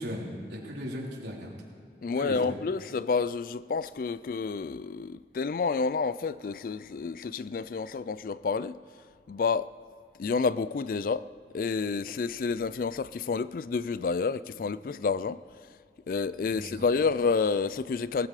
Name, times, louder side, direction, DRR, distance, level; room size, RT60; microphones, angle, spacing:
voice 1, 0.0-1.5 2.2-2.5 16.5-16.8, equal, 70° right, 3.7 m, -37 dB
voice 2, 2.0-8.8 9.3-9.7 10.2-11.2 11.5-15.4 16.1-18.3, left 4 dB, 50° left, 0.3 m, -29 dB
19.5 x 14.0 x 4.9 m
head